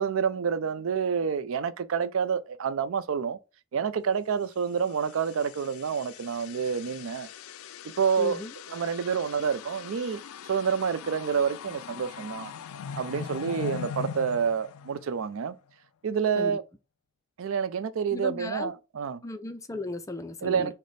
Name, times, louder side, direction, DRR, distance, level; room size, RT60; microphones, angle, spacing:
voice 1, 0.0-3.4 3.7-7.3 8.0-8.4 8.7-10.2 10.5-12.5 13.0-15.5 16.0-16.6 17.4-19.2 20.4-20.7, right 6 dB, 75° right, 0.4 m, -28 dB
sound 1, 4.8-15.5, left 7 dB, 90° left, 0.3 m, -41 dB
voice 2, 8.2-8.5 16.4-16.6 18.1-18.7 19.2-20.7, left 2 dB, 15° left, 0.4 m, -35 dB
4.9 x 2.1 x 4.0 m
head